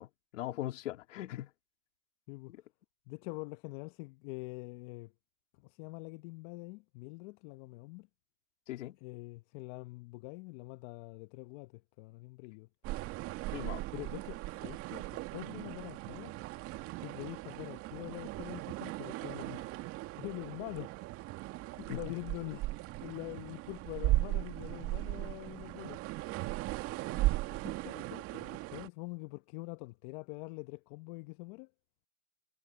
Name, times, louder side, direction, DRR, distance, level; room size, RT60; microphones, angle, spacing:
voice 1, 0.0-1.5 2.5-2.6 8.7-9.0 13.5-13.8 21.9-22.1, left 14 dB, 55° left, 3.1 m, -40 dB
voice 2, 3.1-5.1 5.6-8.1 9.0-12.7 13.9-16.3 17.0-19.8 20.2-21.1 21.8-26.0 27.1-31.7, left 25 dB, 35° left, 1.0 m, -45 dB
sound 1, 12.8-28.9, right 18 dB, 30° right, 2.0 m, -37 dB
hypercardioid pair, 130°, 44 cm